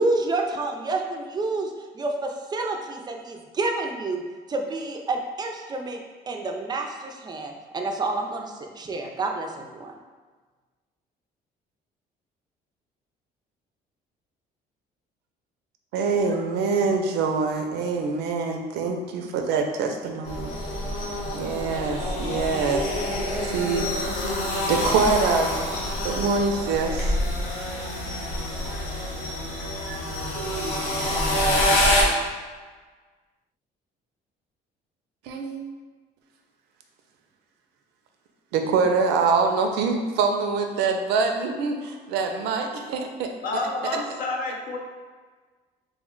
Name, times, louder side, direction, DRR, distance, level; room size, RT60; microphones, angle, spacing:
voice 1, 0.0-4.2 4.5-6.0 6.3-9.9, right 2 dB, 25° right, 2 dB, 0.4 m, -29 dB
voice 2, 15.9-20.5 21.3-22.9 23.4-23.9 24.7-25.5 26.0-27.2 28.7-28.8 29.9-30.0 30.3-31.3 35.3-35.6 38.5-43.3, right 4 dB, 85° right, 4 dB, 0.4 m, -25 dB
sound 1, 20.2-32.0, left 1 dB, 75° left, 0.9 m, -26 dB
voice 3, 43.4-44.8, left 2 dB, 55° left, 0 dB, 0.6 m, -29 dB
3.1 x 2.1 x 3.7 m, 1.4 s
cardioid pair, 110°, 17 cm